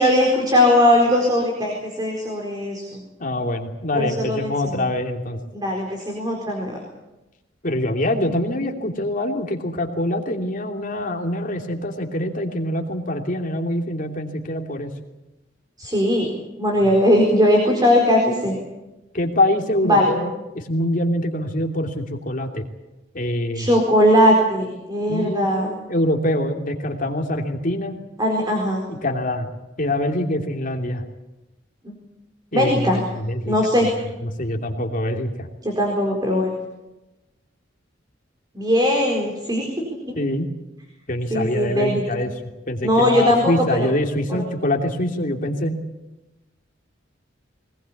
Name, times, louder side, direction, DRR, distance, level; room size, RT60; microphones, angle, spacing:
voice 1, 0.0-3.0 3.9-4.8 5.5-6.8 15.8-16.3 16.6-18.6 19.8-20.1 23.5-25.8 28.2-28.8 31.8-31.9 32.5-33.0 33.5-33.9 35.6-36.6 38.5-39.7 40.1-40.2 41.3-42.0 42.8-43.9 44.3-44.4, equal, 20° right, 1 dB, 4.3 m, -19 dB
voice 2, 3.2-5.4 7.6-14.9 19.1-22.6 23.1-23.7 25.1-28.0 28.9-29.5 29.8-31.0 32.5-33.5 34.2-35.5 40.2-40.5 41.1-42.3 42.7-45.8, left 1 dB, 45° left, 3 dB, 2.9 m, -24 dB
21.5 x 20.0 x 8.6 m, 1.0 s
head